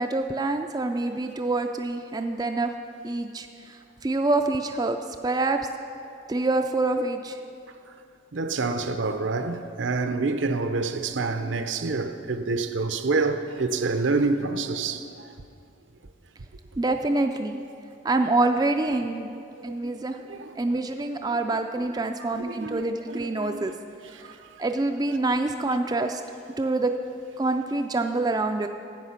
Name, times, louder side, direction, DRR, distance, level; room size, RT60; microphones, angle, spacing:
voice 1, 0.0-2.7 3.0-5.6 6.3-7.4 16.8-17.6 18.0-19.3 19.6-20.2 20.6-23.7 24.1-26.2 26.6-26.9 27.4-28.7, right 2 dB, 20° right, 0.3 m, -26 dB
voice 2, 8.3-15.3 19.6-19.9 20.3-20.6 22.2-23.7 24.1-24.2, right 3 dB, 75° right, 0.7 m, -28 dB
13.0 x 8.8 x 5.7 m
head